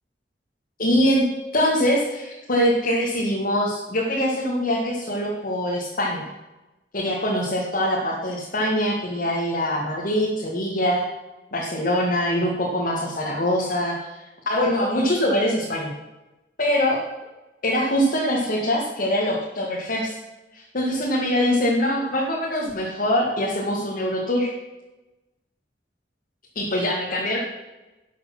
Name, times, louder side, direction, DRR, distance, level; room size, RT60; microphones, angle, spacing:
voice 1, 0.8-1.2 1.5-6.3 6.9-11.0 11.5-15.9 16.6-17.0 17.6-20.2 20.5-24.5 26.6-27.4, equal, 50° left, -3 dB, 1.9 m, -23 dB
12.0 x 7.2 x 6.0 m, 1.1 s
head